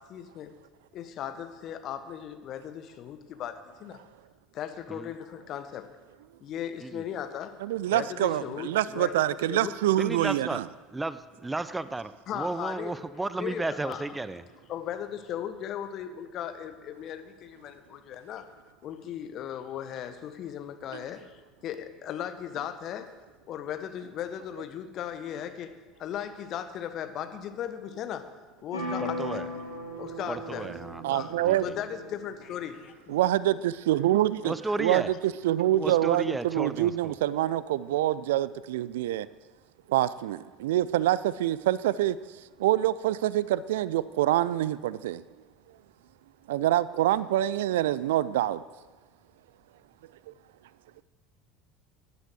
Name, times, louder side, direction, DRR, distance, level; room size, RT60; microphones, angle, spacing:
voice 1, 0.1-0.5 0.9-4.0 4.5-5.9 6.4-7.6 7.9-9.7 12.3-12.9 13.4-14.1 14.7-18.4 18.8-21.4 21.6-23.1 23.5-25.7 26.0-28.3 28.6-29.4 30.0-30.7 31.1-31.3 31.6-33.2, left 9 dB, 45° left, 9 dB, 1.5 m, -37 dB
voice 2, 7.6-10.6 20.9-21.0 31.0-31.7 33.1-39.3 39.9-42.2 42.6-45.2 46.5-48.6, right 13 dB, 65° right, 18 dB, 0.4 m, -26 dB
voice 3, 10.0-10.6 10.9-14.5 29.0-29.5 30.3-31.0 31.4-31.8 34.4-35.1 35.8-37.2, right 2 dB, 10° right, 15 dB, 0.7 m, -33 dB
sound 1, 28.7-32.5, left 1 dB, 85° left, 4.3 m, -37 dB
17.5 x 11.5 x 6.4 m, 1.3 s
figure-of-eight pair, 70°, 0 cm